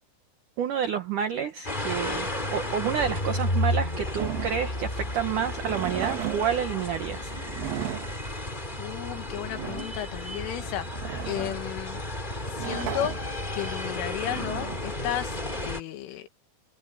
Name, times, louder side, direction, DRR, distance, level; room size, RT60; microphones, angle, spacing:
voice 1, 0.6-7.3, right 8 dB, 80° right, 1.8 m, -29 dB
sound 1, 1.6-15.8, left 1 dB, 10° left, 2.8 m, -32 dB
sound 2, 4.2-15.5, right 11 dB, 60° right, 2.7 m, -37 dB
voice 2, 8.8-10.9 11.3-12.0 12.5-13.2 13.5-15.4 15.6-16.3, left 12 dB, 85° left, 4.3 m, -33 dB
omnidirectional pair, 5.5 m